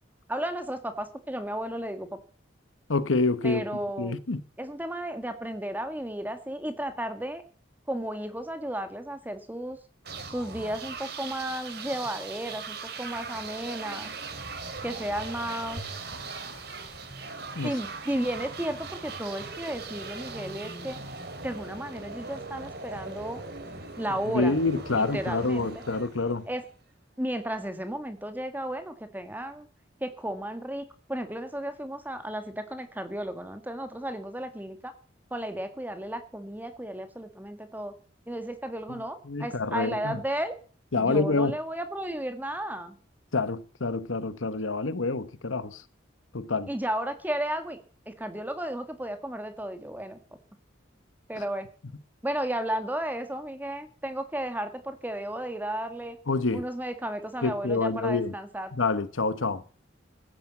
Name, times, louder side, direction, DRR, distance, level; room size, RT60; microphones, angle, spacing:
voice 1, 0.3-2.1 3.4-4.2 4.6-7.4 7.9-9.8 10.3-14.1 14.8-15.8 17.6-21.0 21.4-23.4 24.0-24.6 24.9-25.7 26.5-26.7 27.2-29.7 30.0-34.9 35.3-37.9 38.3-40.6 40.9-43.0 46.7-47.8 48.1-50.2 51.3-51.7 52.2-56.2 56.5-58.7, right 1 dB, 10° right, 1.9 m, -33 dB
voice 2, 2.9-3.6 4.0-4.4 17.5-17.7 24.3-26.5 38.9-39.0 39.3-40.2 40.9-41.6 43.3-45.8 46.3-46.7 56.3-56.6 57.4-58.3 58.8-59.6, left 3 dB, 90° left, 1.1 m, -27 dB
sound 1, 10.0-26.8, right 4 dB, 55° right, 2.9 m, -40 dB
sound 2, 14.8-15.3 15.7-18.0 18.2-18.3, equal, 45° left, 2.7 m, -47 dB
15.5 x 10.0 x 7.2 m
head